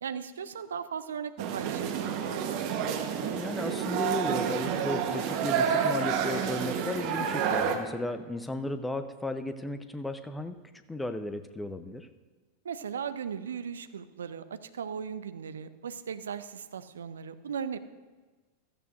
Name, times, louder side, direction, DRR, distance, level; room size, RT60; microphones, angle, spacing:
voice 1, 0.0-2.6 12.6-17.8, right 7 dB, 65° right, 12 dB, 0.6 m, -37 dB
sound 1, 1.4-7.8, right 7 dB, 45° right, 1.2 m, -29 dB
voice 2, 3.4-10.5 10.9-12.1, left 1 dB, 5° left, 10 dB, 0.7 m, -35 dB
15.5 x 13.5 x 2.6 m, 1.3 s
figure-of-eight pair, 90°, 0 cm